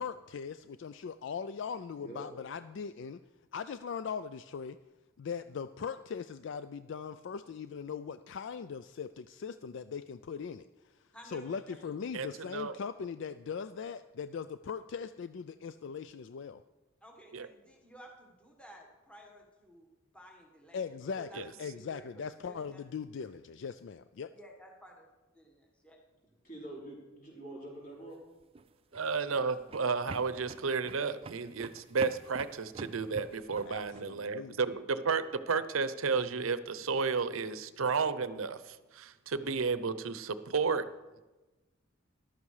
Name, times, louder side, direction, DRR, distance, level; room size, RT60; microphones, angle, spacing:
voice 1, 0.0-3.2 3.5-4.8 5.2-10.7 11.3-16.6 20.7-24.3 33.7-34.6, left 6 dB, 60° left, 12 dB, 0.4 m, -40 dB
voice 2, 1.9-2.3 26.4-28.2 29.4-29.5, right 1 dB, 45° left, -4 dB, 5.0 m, -46 dB
voice 3, 11.1-11.8 17.0-19.9 20.1-20.8 21.2-22.8 24.3-25.1 25.3-26.0, right 1 dB, 5° left, 0 dB, 1.5 m, -54 dB
voice 4, 12.1-12.8 17.3-17.5 21.3-21.4 28.9-40.8, right 5 dB, 85° right, 14 dB, 0.7 m, -32 dB
sound 1, 28.4-34.1, right 4 dB, 30° right, 0.4 m, -47 dB
14.0 x 11.5 x 4.9 m, 1.1 s
head